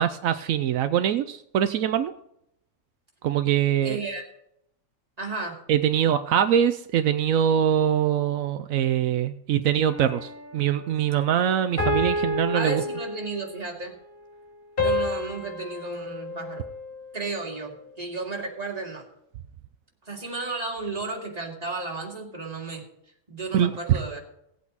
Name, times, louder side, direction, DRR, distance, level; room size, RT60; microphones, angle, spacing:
voice 1, 0.0-2.1 3.2-4.0 5.7-12.8 23.5-24.0, right 9 dB, 80° right, 10 dB, 1.0 m, -23 dB
voice 2, 3.8-4.2 5.2-5.6 12.5-14.0 14.8-16.6 17.1-19.0 20.0-22.8 23.3-24.2, right 3 dB, 30° right, -1 dB, 2.5 m, -33 dB
sound 1, 9.9-10.6 11.8-13.6 14.8-17.2, left 1 dB, 40° left, 3.7 m, -29 dB
18.0 x 8.5 x 4.0 m, 0.77 s
omnidirectional pair, 1.4 m